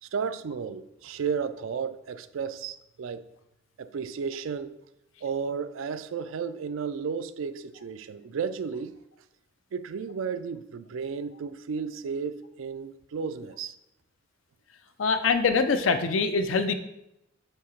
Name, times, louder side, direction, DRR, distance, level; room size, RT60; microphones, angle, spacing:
voice 1, 0.0-3.2 3.8-4.7 5.2-9.0 9.7-13.8, right 6 dB, 85° right, 0.4 m, -33 dB
voice 2, 15.0-16.7, left 4 dB, 80° left, 0.5 m, -24 dB
7.7 x 2.8 x 4.4 m
head